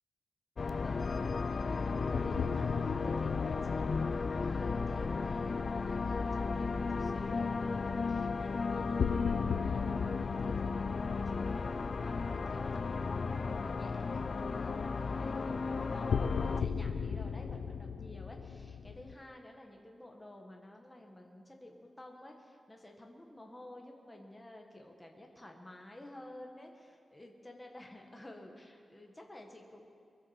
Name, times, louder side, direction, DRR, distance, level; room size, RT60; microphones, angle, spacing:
sound 1, 0.6-16.6, left 4 dB, 40° left, 0.4 m, -34 dB
voice 1, 0.8-29.9, left 1 dB, 10° left, 1 dB, 1.4 m, -52 dB
sound 2, 2.1-6.3 9.0-13.4 13.7-13.8 16.1-19.2, left 6 dB, 90° left, 0.6 m, -38 dB
23.0 x 8.3 x 7.2 m, 2.4 s
wide cardioid pair, 175°, 0 cm